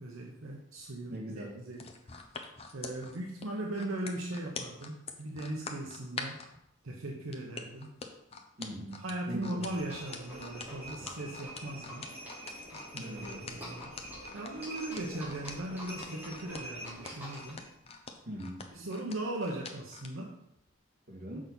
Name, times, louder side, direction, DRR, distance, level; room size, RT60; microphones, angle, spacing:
voice 1, 0.0-2.0 2.7-6.4 6.8-7.9 8.9-12.1 12.9-13.9 14.3-17.6 18.7-20.3, right 1 dB, 80° right, 0 dB, 1.0 m, -39 dB
voice 2, 1.1-1.5 8.6-9.6 12.9-13.4 18.3-18.6 21.1-21.4, equal, 45° right, -3 dB, 2.3 m, -41 dB
sound 1, 1.7-6.5 7.3-20.1 20.6-20.7, left 4 dB, 30° left, 0.7 m, -44 dB
Livestock farm animals working animals, 9.6-17.7, equal, 10° right, 3.1 m, -45 dB
6.4 x 5.9 x 5.4 m, 0.82 s
head